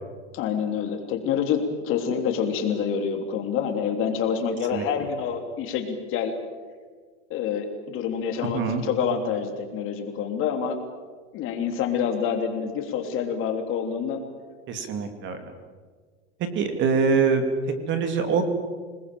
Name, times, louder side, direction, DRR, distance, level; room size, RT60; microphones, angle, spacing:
voice 1, 0.3-6.3 7.3-10.8 11.3-14.2, left 7 dB, 35° left, 4 dB, 3.2 m, -27 dB
voice 2, 14.7-15.4 16.5-17.4 17.9-18.4, right 5 dB, 35° right, 7 dB, 2.7 m, -23 dB
27.5 x 20.0 x 7.7 m, 1.5 s
supercardioid pair, 150°, 34 cm